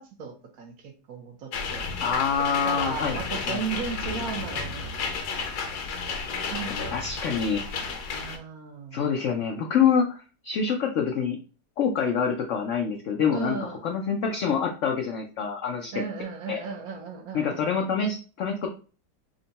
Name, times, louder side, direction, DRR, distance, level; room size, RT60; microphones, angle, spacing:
voice 1, 0.0-2.0 2.4-5.5 6.5-6.9 8.1-9.1 13.3-13.8 15.9-17.7, right 5 dB, 65° right, 3 dB, 1.0 m, -36 dB
sound 1, 1.5-8.4, left 4 dB, 70° left, 1.2 m, -32 dB
voice 2, 2.0-3.2 3.5-3.6 6.7-7.6 8.9-11.4 11.8-16.0 16.5-16.6 17.3-18.7, left 6 dB, 85° left, 2 dB, 0.6 m, -26 dB
3.6 x 2.2 x 3.9 m, 0.37 s
omnidirectional pair, 1.9 m